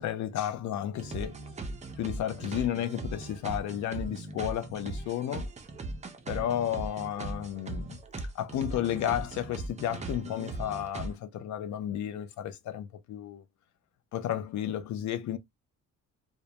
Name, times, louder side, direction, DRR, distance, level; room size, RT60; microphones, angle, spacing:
voice 1, 0.0-1.4 2.0-5.5 6.3-8.0 8.3-13.4 14.1-15.4, left 11 dB, 70° left, 0.6 m, -32 dB
sound 1, 1.0-11.1, right 2 dB, 25° right, 0.5 m, -39 dB
2.1 x 2.1 x 2.8 m
cardioid pair, 90°, 30 cm